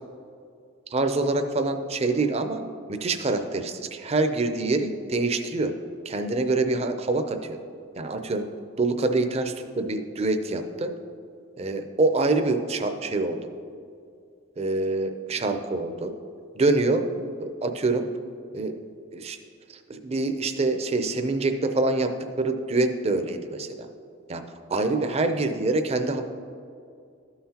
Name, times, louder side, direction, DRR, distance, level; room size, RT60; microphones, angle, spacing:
voice 1, 0.9-2.6 2.9-5.7 6.1-7.6 8.0-8.4 8.8-10.9 11.6-13.4 14.6-16.1 16.5-17.1 17.4-18.0 18.5-18.8 19.1-19.4 19.9-22.1 22.4-23.7 24.3-24.4 24.7-26.2, right 2 dB, 30° right, 7 dB, 0.5 m, -25 dB
13.0 x 5.7 x 2.9 m, 2.3 s
head